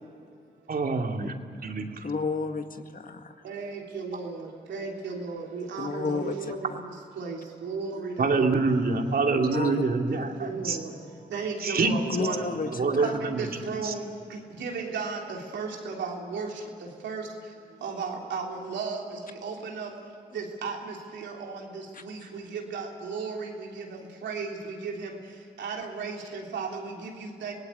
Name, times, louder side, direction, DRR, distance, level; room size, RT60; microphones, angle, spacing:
voice 1, 0.7-1.3 1.6-2.1 8.2-10.8 11.6-12.3 12.7-13.5 13.8-13.9, right 3 dB, 55° right, 4 dB, 2.6 m, -26 dB
voice 2, 2.0-3.3 5.8-6.3 6.7-6.8 9.5-9.8 12.1-12.7 12.9-13.1 21.9-22.0, left 4 dB, 50° left, 6 dB, 2.0 m, -31 dB
voice 3, 3.5-4.4 4.7-6.7 7.2-7.4 7.6-8.5 10.2-10.9 11.3-12.5 13.0-14.0 14.6-15.2 15.5-16.5 17.0-17.2 17.8-19.0 19.4-19.9 20.3-20.8 21.1-21.6 22.1-23.5 24.2-24.5 24.8-25.1 25.6-27.5, right 5 dB, 85° right, 0 dB, 3.4 m, -34 dB
25.5 x 18.0 x 8.3 m, 2.4 s
supercardioid pair, 45°, 18 cm